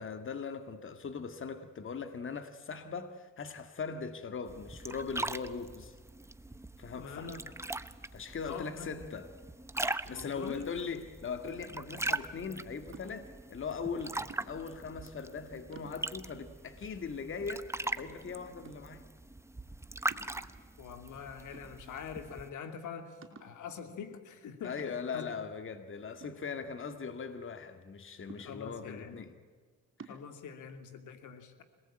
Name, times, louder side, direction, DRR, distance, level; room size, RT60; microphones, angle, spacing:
voice 1, 0.0-6.0 6.8-7.3 8.1-9.3 10.1-19.1 24.6-29.3 30.0-30.2, left 5 dB, 40° left, 2.0 m, -40 dB
sound 1, 4.5-22.5, right 2 dB, 10° right, 1.0 m, -41 dB
voice 2, 7.0-7.4 8.5-8.9 10.1-10.7 20.8-24.8 25.1-25.3 28.4-29.2 30.1-31.6, left 7 dB, 75° left, 2.8 m, -44 dB
sound 2, 11.5-12.0 12.9-13.4 14.3-14.8 15.3-15.4 15.7-16.4 16.9-17.0 17.4-18.2 18.6-19.1 20.1-20.8 21.5-22.2 22.5-22.6 23.2-23.6 24.8-25.3 26.2-27.1 28.3-28.9 30.0-30.3, right 4 dB, 45° right, 5.0 m, -53 dB
27.0 x 19.5 x 9.0 m
cardioid pair, 90°, 30 cm